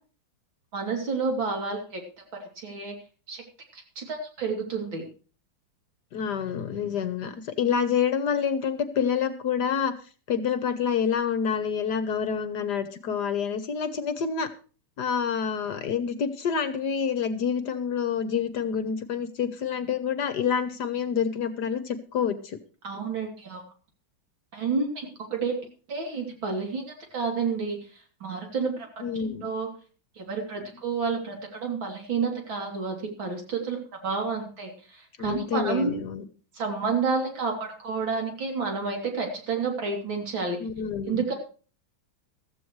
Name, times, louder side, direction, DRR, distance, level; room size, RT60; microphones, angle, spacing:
voice 1, 0.7-2.0 2.6-2.9 3.3-3.4 3.7-5.1 22.8-23.6 24.5-25.6 25.9-27.8 28.2-29.7 30.2-33.8 34.0-36.0 36.5-40.6 41.1-41.3, right 4 dB, 70° right, 2 dB, 3.7 m, -30 dB
voice 2, 6.1-9.9 10.3-14.5 15.0-22.6 29.0-29.5 35.2-36.2 40.6-41.2, left 7 dB, 60° left, 11 dB, 1.4 m, -27 dB
15.5 x 14.0 x 3.1 m, 0.37 s
omnidirectional pair, 2.2 m